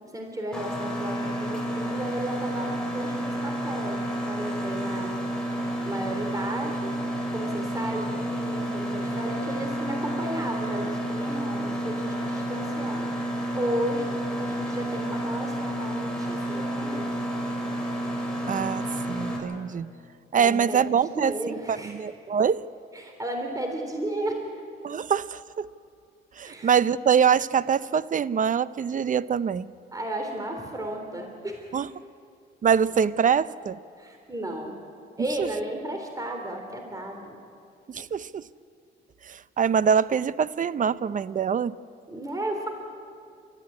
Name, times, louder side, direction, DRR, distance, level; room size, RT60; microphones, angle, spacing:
voice 1, 0.0-6.9 7.3-14.1 14.4-17.2 20.4-22.0 22.9-24.4 26.4-26.7 29.9-31.7 34.0-34.7 35.2-37.4 42.1-42.7, right 1 dB, 15° right, 3 dB, 3.4 m, -34 dB
Mechanisms, 0.5-19.4, right 1 dB, 5° left, 5.7 m, -30 dB
voice 2, 18.5-19.9 20.3-22.7 24.8-25.7 26.4-29.7 31.7-31.9 32.6-33.8 35.4-35.5 37.9-38.4 39.2-41.7, right 7 dB, 40° right, 17 dB, 0.7 m, -24 dB
29.5 x 14.0 x 9.6 m, 2.4 s
cardioid pair, 90°, 20 cm